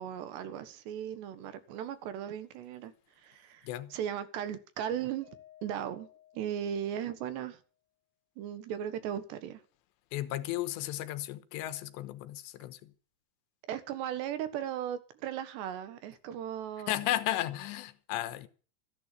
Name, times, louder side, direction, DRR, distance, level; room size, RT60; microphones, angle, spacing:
voice 1, 0.0-2.9 3.2-5.3 5.6-6.1 6.3-7.6 8.4-9.6 13.7-17.0, right 9 dB, 75° right, 3.6 m, -37 dB
Mallet percussion, 5.2-7.5, left 12 dB, 35° right, 7.0 m, -58 dB
voice 2, 10.1-12.9 16.9-18.5, left 14 dB, 90° left, 3.2 m, -34 dB
14.0 x 11.0 x 8.4 m
omnidirectional pair, 5.1 m